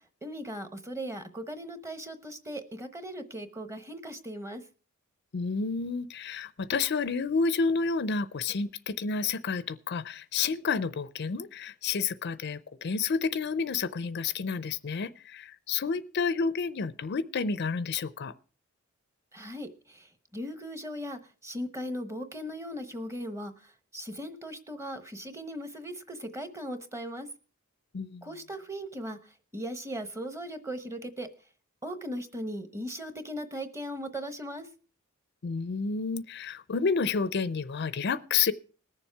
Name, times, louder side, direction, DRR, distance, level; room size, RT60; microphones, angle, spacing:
voice 1, 0.0-4.6 19.3-27.3 28.2-31.3 31.8-34.7, equal, 15° right, 10 dB, 1.0 m, -38 dB
voice 2, 5.3-18.3 27.9-28.2 35.4-38.5, left 5 dB, 50° left, 15 dB, 0.5 m, -30 dB
19.5 x 7.1 x 4.6 m, 0.39 s
head